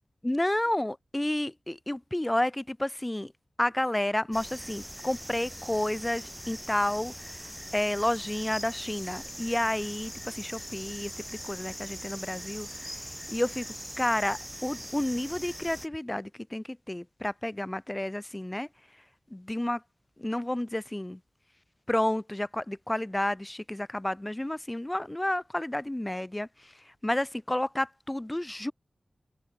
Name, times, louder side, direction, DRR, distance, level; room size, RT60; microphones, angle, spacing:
voice 1, 0.2-3.3 3.6-11.1 11.4-18.7 19.3-19.8 20.2-21.2 21.9-28.7, left 1 dB, 15° left, 0.3 m, -31 dB
sound 1, 4.3-15.9, equal, 5° right, 1.9 m, -41 dB
wide cardioid pair, 105°, 0 cm